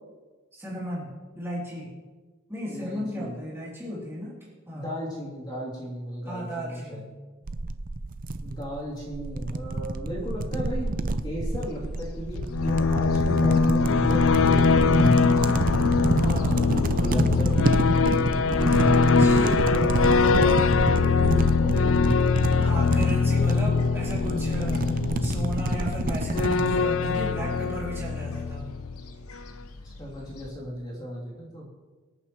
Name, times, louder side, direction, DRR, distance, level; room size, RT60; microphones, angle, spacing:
voice 1, 0.5-1.9 2.5-4.3 4.7-4.9 6.2-7.1 16.2-17.3 19.2-19.6 22.6-28.7, equal, 10° right, -6 dB, 3.2 m, -35 dB
voice 2, 2.6-3.4 4.7-7.0 8.4-10.9 11.2-15.1 16.5-17.6 18.5-21.9 30.0-31.7, equal, 20° left, -6 dB, 3.1 m, -36 dB
sound 1, 7.5-26.8, right 2 dB, 40° right, 0.5 m, -28 dB
Gull seagull, 11.6-30.5, left 2 dB, 80° left, 1.1 m, -44 dB
sound 2, 12.4-29.0, left 4 dB, 60° left, 0.4 m, -22 dB
24.5 x 8.9 x 3.1 m, 1.3 s
head